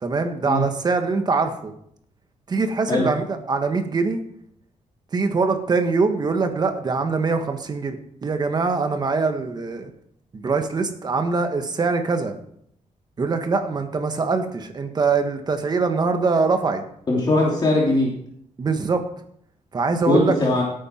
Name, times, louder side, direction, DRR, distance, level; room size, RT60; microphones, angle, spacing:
voice 1, 0.0-1.7 2.5-4.2 5.1-9.9 10.3-12.3 13.2-16.8 18.6-19.0 19.7-20.3, right 4 dB, 35° right, 7 dB, 1.5 m, -23 dB
voice 2, 17.1-18.1 20.1-20.6, left 2 dB, 35° left, -3 dB, 3.1 m, -20 dB
16.5 x 9.0 x 4.5 m, 0.69 s
wide cardioid pair, 145°, 12 cm